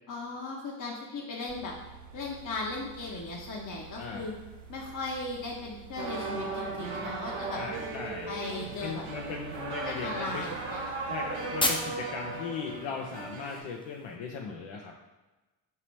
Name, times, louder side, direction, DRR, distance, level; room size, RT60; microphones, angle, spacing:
voice 1, 0.1-1.7 2.1-4.3 4.7-7.6 8.3-9.0 9.8-11.0, left 3 dB, 40° left, -4 dB, 1.0 m, -37 dB
noise - heat pump, 1.5-12.4, right 7 dB, 35° right, 0.5 m, -50 dB
sound 1, 2.4-14.2, left 2 dB, 10° left, 0.7 m, -41 dB
voice 2, 4.0-4.3 7.5-8.4 8.8-10.5 11.1-15.1, left 5 dB, 65° left, 0 dB, 0.7 m, -38 dB
sound 2, 6.0-13.6, right 3 dB, 70° right, 1.0 m, -37 dB
5.7 x 2.9 x 3.2 m, 1.1 s
hypercardioid pair, 50°, 50 cm